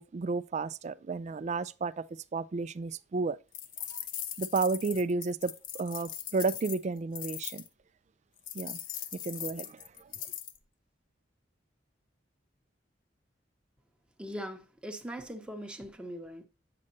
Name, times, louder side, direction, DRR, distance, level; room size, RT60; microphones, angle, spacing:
voice 1, 0.0-2.1 2.3-3.4 3.9-4.0 4.4-7.6 8.5-8.8 9.1-10.1, right 4 dB, 40° right, 0.3 m, -32 dB
sound 1, 3.5-7.7 8.5-10.6, left 10 dB, 50° left, 0.6 m, -40 dB
voice 2, 14.2-16.4, equal, 5° right, 0.8 m, -41 dB
8.5 x 6.4 x 2.6 m
head